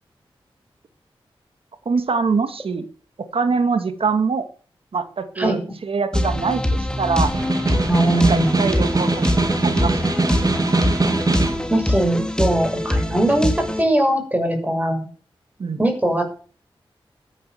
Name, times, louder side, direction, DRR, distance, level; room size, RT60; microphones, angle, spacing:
voice 1, 1.9-2.9 3.2-4.5 4.9-7.3 8.2-10.0 15.6-15.8, right 5 dB, 70° right, 9 dB, 2.1 m, -23 dB
sound 1, 6.1-13.8, left 1 dB, 10° left, 3.2 m, -23 dB
Snare drum, 7.2-11.7, right 3 dB, 40° right, 2.2 m, -22 dB
voice 2, 7.9-8.5 11.7-15.1 15.8-16.2, right 1 dB, 15° right, 4 dB, 6.5 m, -20 dB
13.5 x 10.0 x 7.9 m, 0.42 s
cardioid pair, 55°, 10 cm